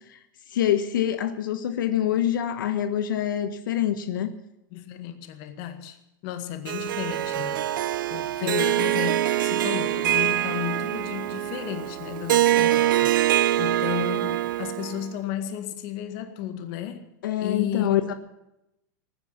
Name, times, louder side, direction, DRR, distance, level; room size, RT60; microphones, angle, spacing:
voice 1, 0.5-4.3 8.4-8.8 17.2-18.1, left 10 dB, 80° left, 9 dB, 1.4 m, -25 dB
voice 2, 4.7-6.0 6.2-7.7 8.1-17.1 17.4-17.9, left 10 dB, 40° left, 8 dB, 1.9 m, -34 dB
Harp, 6.7-15.1, right 13 dB, 85° right, 0.6 m, -24 dB
19.5 x 9.9 x 7.3 m, 0.87 s
supercardioid pair, 160°, 11 cm